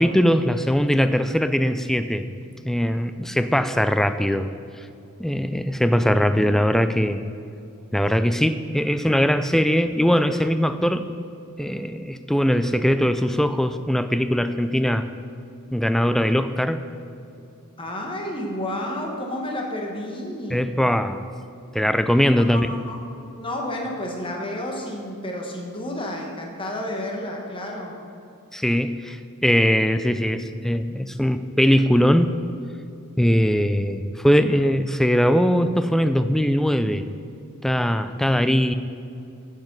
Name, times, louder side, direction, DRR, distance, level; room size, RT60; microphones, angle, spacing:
voice 1, 0.0-2.2 2.7-4.5 5.2-7.2 7.9-11.0 11.6-15.1 15.7-16.8 20.5-21.2 21.7-22.7 28.5-32.3 33.2-37.0 37.6-38.7, equal, ahead, 11 dB, 0.3 m, -21 dB
voice 2, 17.8-20.6 22.4-23.0 23.4-28.0, left 1 dB, 25° left, 0 dB, 1.2 m, -31 dB
9.1 x 7.5 x 6.1 m, 2.7 s
head